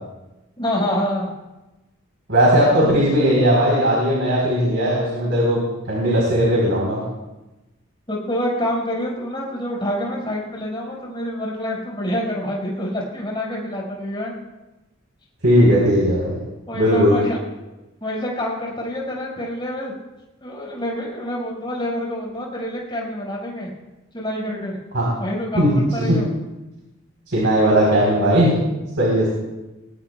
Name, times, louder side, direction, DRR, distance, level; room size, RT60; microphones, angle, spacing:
voice 1, 0.6-1.3 2.7-3.1 8.1-14.3 16.7-17.4 18.0-19.9 20.4-23.7 24.1-24.8 25.2-26.3, equal, 25° left, -4 dB, 5.3 m, -27 dB
voice 2, 2.3-7.0 15.4-16.4 16.7-17.1 24.9-25.1 25.5-26.2 27.3-28.5 29.0-29.3, equal, 65° right, -4 dB, 4.1 m, -17 dB
21.0 x 19.5 x 2.4 m, 1.0 s
head